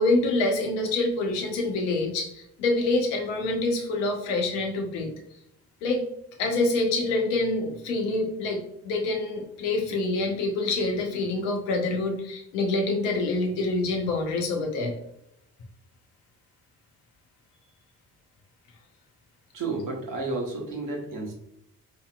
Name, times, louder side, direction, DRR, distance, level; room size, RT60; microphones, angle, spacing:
voice 1, 0.0-5.1 5.8-6.1 6.4-14.9, left 2 dB, 65° left, 3 dB, 0.9 m, -26 dB
voice 2, 19.5-21.3, right 3 dB, 45° right, -1 dB, 1.2 m, -31 dB
4.7 x 2.8 x 2.3 m, 0.77 s
figure-of-eight pair, 40°, 45 cm